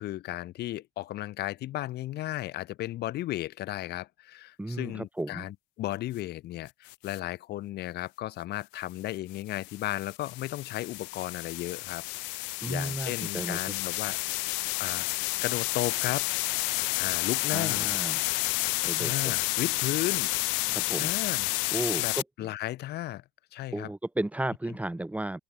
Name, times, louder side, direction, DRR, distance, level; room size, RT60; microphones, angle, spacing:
voice 1, 0.0-12.0 12.3-14.2 14.8-15.1 15.4-16.3 16.9-17.9 19.0-20.3 21.0-21.5 22.0-23.2 23.5-23.9, left 15 dB, 60° left, 3.4 m, -35 dB
voice 2, 4.6-5.5 12.6-13.6 17.5-18.2 18.8-19.3 20.7-21.1 21.7-22.5 23.7-25.4, right 1 dB, 5° right, 2.7 m, -34 dB
sound 1, 6.9-7.2 9.3-22.2, left 33 dB, 75° left, 1.1 m, -30 dB
open air
supercardioid pair, 105°, 19 cm